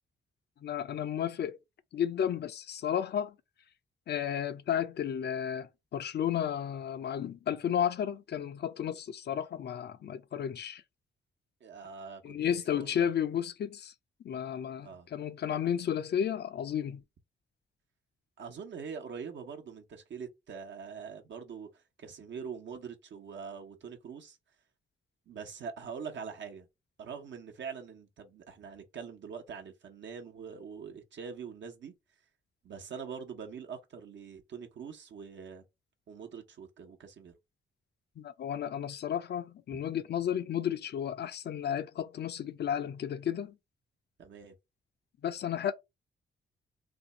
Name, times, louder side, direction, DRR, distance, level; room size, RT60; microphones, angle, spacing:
voice 1, 0.6-1.6 1.9-3.3 4.1-10.8 12.2-13.9 14.2-17.0 38.2-43.5 45.2-45.7, left 9 dB, 55° left, 0.5 m, -33 dB
voice 2, 11.6-13.1 14.8-15.1 18.4-21.7 22.0-24.4 25.3-26.7 27.0-31.9 32.6-35.6 36.1-37.3 44.2-44.5, right 6 dB, 65° right, 1.0 m, -43 dB
2.6 x 2.3 x 3.9 m
supercardioid pair, 55°, 20 cm